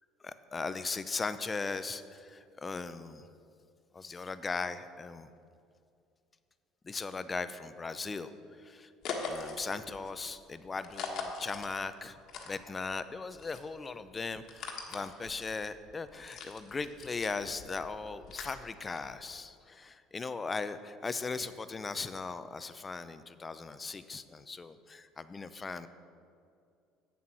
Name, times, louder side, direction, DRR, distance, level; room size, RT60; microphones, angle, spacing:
voice 1, 0.2-3.3 3.9-5.3 6.8-8.3 8.6-8.9 9.3-12.2 12.5-25.9, left 4 dB, 25° left, 12 dB, 0.6 m, -38 dB
sound 1, 9.0-13.0 13.3-19.3, left 4 dB, 60° left, 1.4 m, -42 dB
8.5 x 7.4 x 6.1 m, 2.4 s
hypercardioid pair, 75°, 0 cm